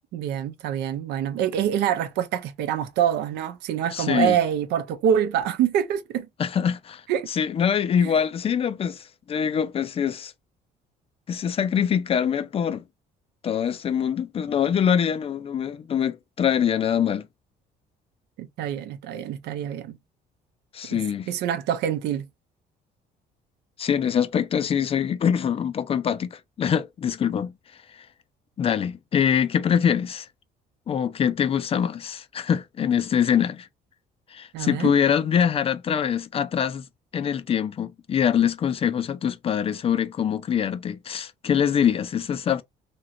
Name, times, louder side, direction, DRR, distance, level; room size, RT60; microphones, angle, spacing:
voice 1, 0.1-6.3 7.1-7.3 8.0-8.1 18.4-20.0 20.9-21.0 21.3-22.3 34.5-34.9, right 9 dB, 85° right, 0.6 m, -25 dB
voice 2, 3.9-4.4 6.4-7.0 7.3-10.3 11.3-12.8 13.4-17.3 20.7-21.3 23.8-27.5 27.9-28.1 28.6-30.3 30.9-33.7 34.3-36.8 37.1-42.6, left 8 dB, 35° left, 0.4 m, -24 dB
3.0 x 2.9 x 2.5 m
cardioid pair, 110°, 17 cm